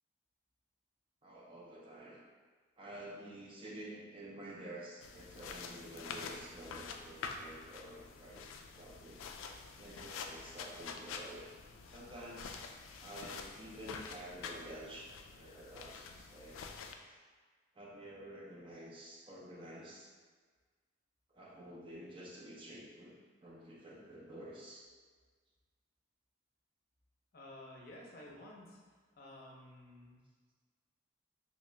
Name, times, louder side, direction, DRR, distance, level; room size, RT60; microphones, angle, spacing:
voice 1, 1.2-2.2 2.8-8.5 8.8-9.3 9.8-11.5 11.9-12.6 13.0-16.8 17.1-17.2 17.7-20.1 21.3-24.9, right 1 dB, 25° right, -4 dB, 0.4 m, -50 dB
sound 1, 5.0-17.0, left 5 dB, 90° left, 0.3 m, -47 dB
voice 2, 27.3-28.8 29.2-30.2, left 1 dB, 50° left, -3 dB, 0.6 m, -52 dB
3.0 x 2.8 x 3.3 m, 1.5 s
head